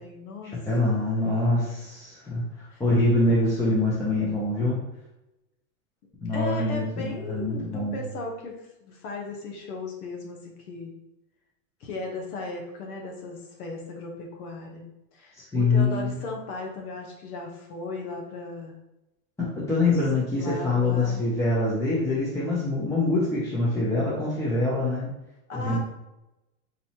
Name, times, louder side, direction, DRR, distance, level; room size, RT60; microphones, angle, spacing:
voice 1, 0.0-0.9 2.7-2.8 6.3-8.5 8.8-10.9 11.8-14.8 15.1-18.7 20.4-21.3 25.5-25.8, left 3 dB, 85° left, 1 dB, 1.1 m, -37 dB
voice 2, 0.7-2.4 2.8-4.8 6.2-8.0 15.4-16.2 19.4-25.1 25.5-25.8, left 2 dB, 5° left, -7 dB, 0.5 m, -24 dB
4.1 x 2.7 x 2.8 m, 0.94 s
hypercardioid pair, 120°, 44 cm